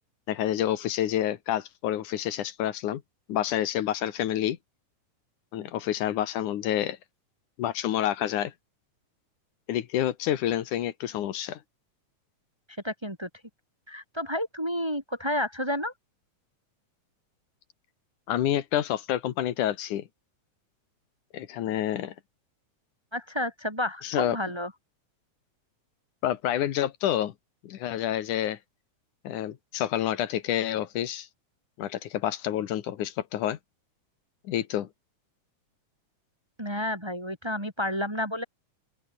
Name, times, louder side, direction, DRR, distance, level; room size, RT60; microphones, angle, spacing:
voice 1, 0.3-3.0 3.3-4.6 5.5-7.0 7.6-8.5 9.7-11.6 18.3-20.0 21.3-22.1 24.0-24.4 26.2-27.3 27.6-28.6 29.2-31.3 31.8-33.6 34.4-34.9, left 11 dB, 85° left, 2.9 m, -28 dB
voice 2, 12.8-13.3 13.9-15.9 23.1-24.7 36.6-38.4, left 1 dB, 10° right, 7.9 m, -30 dB
open air
omnidirectional pair, 3.4 m